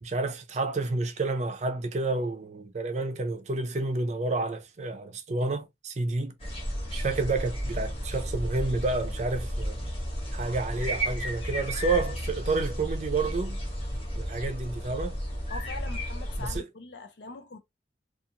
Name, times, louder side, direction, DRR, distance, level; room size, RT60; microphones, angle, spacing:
voice 1, 0.0-6.3 6.9-9.7 10.3-13.6 14.2-15.2 16.4-16.6, right 3 dB, 40° right, 0.5 m, -30 dB
sound 1, 6.4-16.6, equal, 35° left, 1.0 m, -33 dB
voice 2, 15.5-17.6, left 3 dB, 75° left, 0.5 m, -42 dB
2.5 x 2.4 x 2.8 m
head